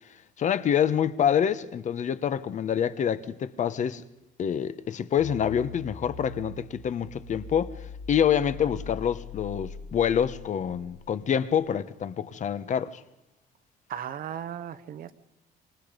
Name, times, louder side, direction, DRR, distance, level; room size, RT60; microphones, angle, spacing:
voice 1, 0.4-4.0 4.4-7.7 8.1-13.0, left 8 dB, 45° left, 1.2 m, -26 dB
sound 1, 5.2-11.4, left 5 dB, 70° left, 2.5 m, -42 dB
voice 2, 13.9-15.1, right 9 dB, 60° right, 1.3 m, -36 dB
26.5 x 26.5 x 5.3 m
cardioid pair, 110°, 17 cm